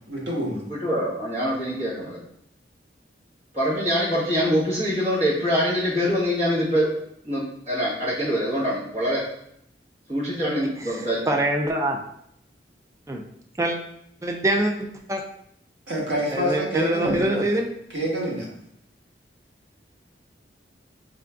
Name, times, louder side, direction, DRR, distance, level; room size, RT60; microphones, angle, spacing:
voice 1, 0.1-0.6 15.9-17.4 17.9-18.5, equal, 80° right, -3 dB, 1.2 m, -26 dB
voice 2, 0.7-2.2 3.5-6.9 7.2-9.2 10.1-11.3, equal, 40° right, -8 dB, 1.4 m, -24 dB
voice 3, 10.8-12.0 13.1-13.2 13.6-13.8 14.2-15.2 16.3-17.7, right 1 dB, 15° right, 2 dB, 0.3 m, -24 dB
3.7 x 2.5 x 3.4 m, 0.73 s
head